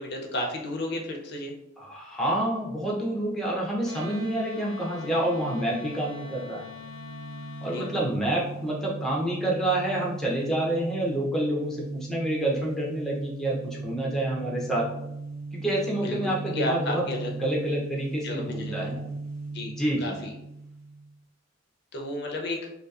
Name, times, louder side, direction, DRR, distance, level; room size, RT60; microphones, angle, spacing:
voice 1, 0.0-1.5 7.6-7.9 16.0-17.3 18.2-18.9 19.5-19.7 20.0-20.3 21.9-22.6, left 1 dB, 55° left, 1 dB, 0.4 m, -32 dB
voice 2, 1.8-6.6 7.6-14.9 15.5-17.0 17.4-19.1 19.7-20.2, right 1 dB, ahead, -4 dB, 0.4 m, -28 dB
Wind instrument woodwind instrument, 3.8-8.0, left 5 dB, 75° right, 1.4 m, -43 dB
sound 1, 6.6-21.1, right 3 dB, 60° right, 0.8 m, -38 dB
2.7 x 2.3 x 2.3 m, 0.83 s
head